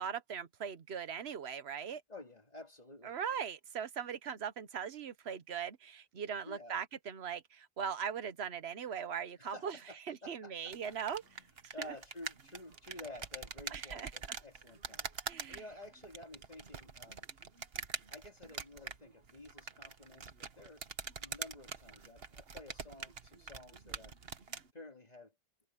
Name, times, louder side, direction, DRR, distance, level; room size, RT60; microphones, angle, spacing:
voice 1, 0.0-2.0 3.0-9.8 10.1-11.2 11.6-11.9 13.7-14.1 15.3-15.6, right 7 dB, 90° right, 1.2 m, -40 dB
voice 2, 2.1-3.2 6.4-6.8 9.4-10.9 11.2-17.3 18.1-24.1 24.7-25.3, left 1 dB, 40° left, 3.1 m, -52 dB
Game Controller Mashing, 10.7-24.7, right 5 dB, 70° right, 1.5 m, -45 dB
omnidirectional pair, 1.1 m